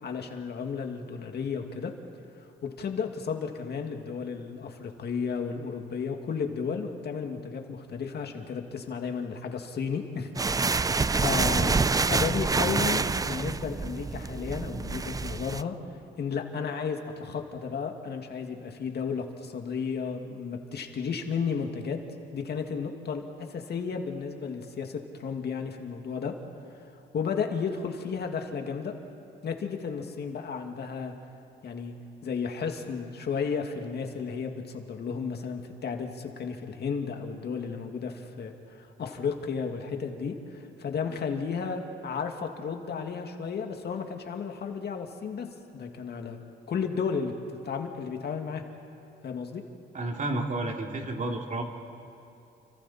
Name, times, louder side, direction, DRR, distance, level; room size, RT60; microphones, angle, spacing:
voice 1, 0.0-1.9 2.6-15.8 16.2-22.0 22.3-26.3 27.1-28.9 29.4-31.1 31.6-31.9 32.2-45.5 45.7-46.4 46.7-47.3 47.6-48.6 49.2-49.6, left 6 dB, 55° left, 4 dB, 2.2 m, -33 dB
sound 1, 10.3-15.6, right 4 dB, 20° right, 0.4 m, -27 dB
voice 2, 49.9-51.6, right 2 dB, 40° right, 2 dB, 2.8 m, -31 dB
29.5 x 25.0 x 4.3 m, 2.7 s
cardioid pair, 90°, 20 cm